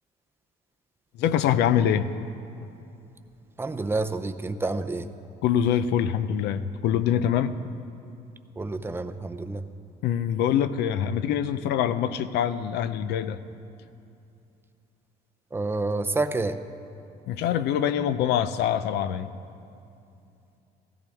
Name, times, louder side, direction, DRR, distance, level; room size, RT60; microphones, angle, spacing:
voice 1, 1.2-2.1 5.4-7.5 10.0-13.4 17.3-19.3, left 9 dB, 80° left, 13 dB, 0.6 m, -24 dB
voice 2, 3.6-5.1 8.6-9.7 15.5-16.6, right 3 dB, 15° right, 9 dB, 0.5 m, -29 dB
16.0 x 14.5 x 3.5 m, 2.7 s
cardioid pair, 110°, 17 cm